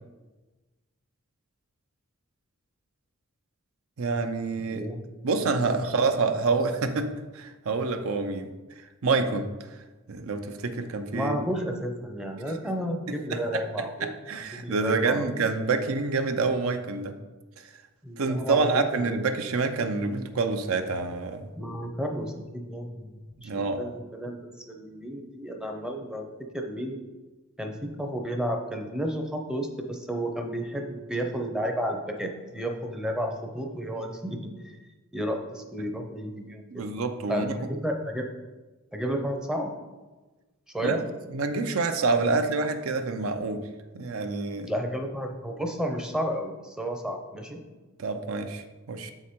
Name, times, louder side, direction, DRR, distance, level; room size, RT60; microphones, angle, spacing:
voice 1, 4.0-4.8 5.2-8.5 9.0-9.5 10.1-11.4 13.1-13.4 13.8-17.1 17.6-17.7 18.2-21.5 23.4-23.8 36.7-37.5 40.8-41.0 41.3-43.6 43.9-44.7 48.0-49.1, right 4 dB, 70° right, 7 dB, 0.6 m, -27 dB
voice 2, 4.6-5.1 5.7-5.8 11.1-14.1 14.6-15.2 18.0-19.3 21.6-27.0 27.6-34.8 35.1-36.9 37.3-38.3 38.9-39.7 40.7-41.1 44.6-47.6, equal, 5° right, 3 dB, 0.6 m, -32 dB
7.3 x 4.9 x 4.3 m, 1.2 s
head